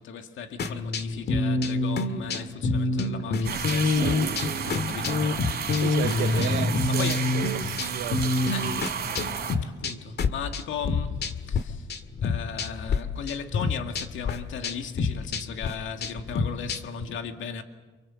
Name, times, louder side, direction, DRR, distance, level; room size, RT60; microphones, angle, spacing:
voice 1, 0.0-7.2 8.5-8.8 9.2-9.3 9.6-11.9 12.2-17.6, left 6 dB, 75° left, 2.2 m, -37 dB
sound 1, 0.6-11.6 11.9-13.0 13.3-17.0, left 3 dB, 55° left, 1.9 m, -27 dB
sound 2, 3.4-9.6, right 7 dB, 50° right, 4.0 m, -32 dB
voice 2, 5.8-8.5, right 13 dB, 85° right, 0.8 m, -34 dB
27.5 x 24.5 x 7.8 m
cardioid pair, 90°, 20 cm